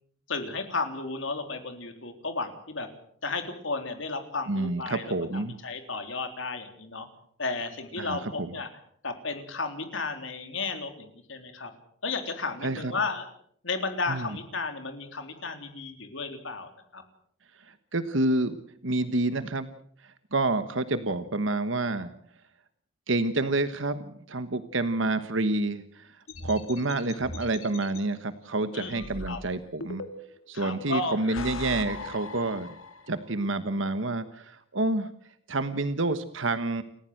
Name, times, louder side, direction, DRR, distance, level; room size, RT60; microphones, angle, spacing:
voice 1, 0.3-2.9 3.2-7.1 7.4-8.7 9.0-11.7 12.0-13.3 13.6-17.0 28.7-29.0 29.3-29.4 30.5-31.2, left 3 dB, 70° left, 7 dB, 3.7 m, -33 dB
voice 2, 4.5-5.6 8.0-8.5 12.6-12.9 14.1-14.4 17.7-18.6 18.8-19.7 20.3-22.1 23.1-26.1 26.4-30.0 30.5-32.7 33.1-35.1 35.5-36.8, right 2 dB, 70° right, 11 dB, 1.3 m, -28 dB
sound 1, 26.3-28.0 28.9-30.5 31.1-33.2, left 2 dB, 90° left, 2.4 m, -39 dB
29.5 x 15.0 x 7.9 m, 0.66 s
head